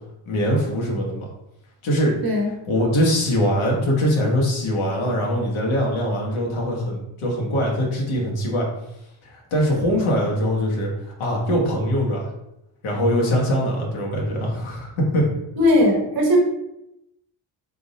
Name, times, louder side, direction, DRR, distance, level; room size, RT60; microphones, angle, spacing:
voice 1, 0.3-1.3 1.8-2.2 2.7-8.7 9.2-10.9 11.2-12.2 12.8-15.3, equal, 85° left, -2 dB, 1.3 m, -22 dB
voice 2, 15.6-16.4, left 1 dB, 50° right, -1 dB, 1.1 m, -18 dB
3.6 x 2.5 x 4.1 m, 0.86 s
cardioid pair, 150°, 48 cm